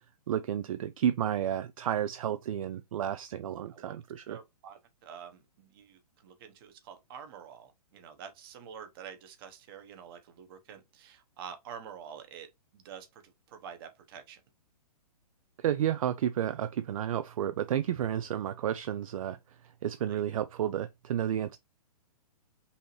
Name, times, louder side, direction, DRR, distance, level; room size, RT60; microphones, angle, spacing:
voice 1, 0.3-4.4 15.6-21.6, right 10 dB, 60° right, 0.4 m, -31 dB
voice 2, 3.7-4.0 4.3-12.5 12.7-14.4 20.1-20.2, right 7 dB, 35° right, 1.1 m, -47 dB
5.5 x 2.8 x 3.2 m
hypercardioid pair, 155°, 20 cm